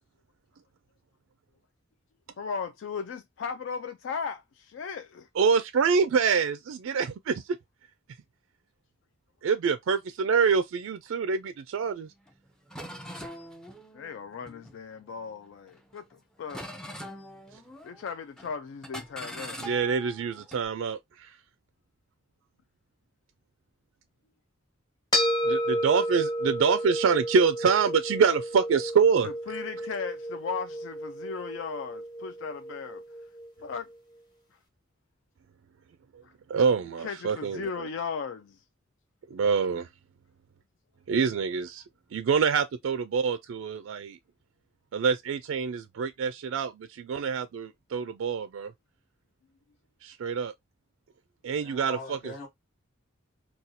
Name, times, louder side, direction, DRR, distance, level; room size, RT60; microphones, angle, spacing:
voice 1, 2.4-5.3 13.9-16.6 17.8-19.6 29.2-33.0 33.6-33.9 36.2-36.3 37.0-38.6, left 5 dB, 70° left, 0.3 m, -37 dB
voice 2, 5.4-7.6 9.4-12.1 19.6-21.3 25.4-29.3 36.1-36.2 36.5-37.9 39.3-39.9 41.1-41.8 42.1-44.2 44.9-48.7 50.0-50.5 51.4-52.3, right 6 dB, 85° right, 0.3 m, -26 dB
sound 1, 12.3-12.4 12.7-15.2 15.7-16.1 16.5-18.1 18.4-18.6 18.8-20.6, equal, 5° left, 0.4 m, -42 dB
sound 2, 25.1-33.7, equal, 20° left, 1.2 m, -31 dB
voice 3, 51.5-52.5, left 2 dB, 45° left, 1.0 m, -42 dB
4.1 x 2.3 x 2.6 m
head